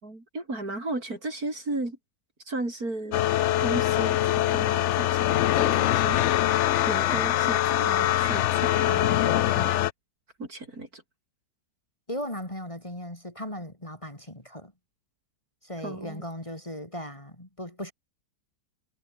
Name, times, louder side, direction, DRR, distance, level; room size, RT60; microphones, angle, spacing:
voice 1, 0.0-2.0 2.5-3.3 3.6-6.4 6.8-9.7 10.4-11.0 15.8-16.2, right 2 dB, 55° right, 6.5 m, -35 dB
sound 1, 3.1-9.9, left 13 dB, 90° left, 0.6 m, -23 dB
voice 2, 12.1-14.7 15.6-17.9, left 1 dB, 15° left, 3.8 m, -37 dB
omnidirectional pair, 1.8 m